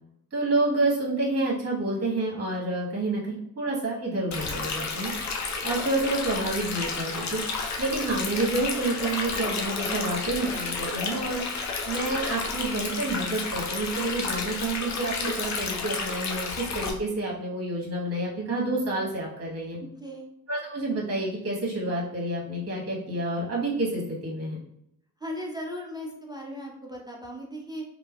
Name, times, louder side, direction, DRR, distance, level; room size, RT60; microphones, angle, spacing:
voice 1, 0.3-5.1 5.6-7.4 7.8-11.4 11.9-19.8 20.5-24.6, right 2 dB, 30° right, -3 dB, 1.1 m, -29 dB
Stream, 4.3-16.9, left 4 dB, 40° left, 0.6 m, -31 dB
sound 1, 5.0-12.3, left 4 dB, 75° left, 0.9 m, -44 dB
voice 2, 19.8-20.3 25.2-27.8, equal, 10° right, -1 dB, 0.3 m, -37 dB
3.1 x 2.1 x 2.2 m, 0.79 s
hypercardioid pair, 50°, 46 cm